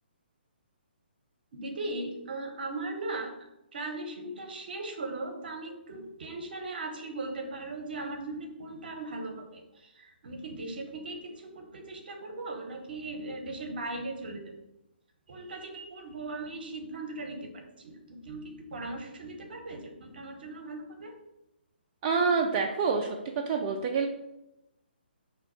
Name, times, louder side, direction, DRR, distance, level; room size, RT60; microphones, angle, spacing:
voice 1, 1.5-3.3 3.7-14.4 15.3-21.1, right 2 dB, 60° right, 4 dB, 0.9 m, -38 dB
voice 2, 22.0-23.2 23.5-24.1, right 5 dB, 30° right, 2 dB, 0.4 m, -27 dB
4.8 x 2.7 x 3.2 m, 0.90 s
figure-of-eight pair, 140°, 6 cm